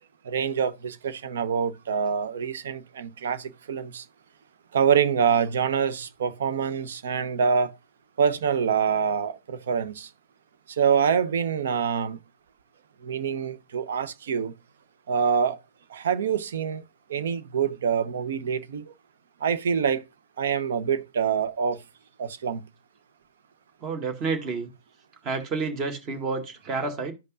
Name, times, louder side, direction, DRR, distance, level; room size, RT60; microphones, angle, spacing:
voice 1, 0.3-4.0 4.7-7.7 8.2-10.1 10.7-12.2 13.0-14.5 15.1-15.6 15.9-16.8 17.1-18.8 19.4-20.0 20.4-21.8 22.2-22.6, right 7 dB, 65° right, 0.9 m, -25 dB
voice 2, 23.8-24.7 25.2-27.1, right 4 dB, 30° right, 1.9 m, -29 dB
13.5 x 5.3 x 2.5 m
hypercardioid pair, 120°, 0 cm